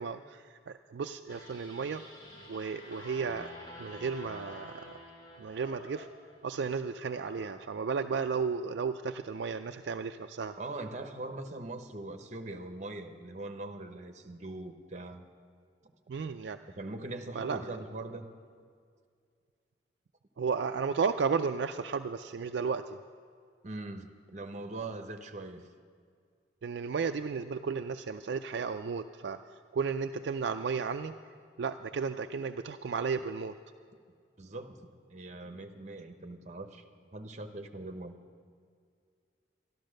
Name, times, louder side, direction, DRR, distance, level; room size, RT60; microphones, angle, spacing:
voice 1, 0.0-2.0 2.5-3.5 3.8-5.0 5.4-6.1 6.4-10.5 16.1-16.6 17.3-17.6 20.4-23.0 26.6-29.4 29.7-31.1 31.6-33.6, right 5 dB, 65° right, 7 dB, 0.4 m, -33 dB
sound 1, 1.3-6.6, left 1 dB, 25° left, 2.3 m, -50 dB
Animal, 2.8-3.5 4.2-4.8 5.4-6.2 6.9-7.6, left 2 dB, 90° left, 3.4 m, -53 dB
voice 2, 10.6-15.3 15.8-15.9 16.8-18.3 23.6-25.7 34.4-36.8 37.1-38.2, right 2 dB, 40° right, 6 dB, 0.9 m, -41 dB
12.5 x 12.0 x 6.4 m, 2.1 s
head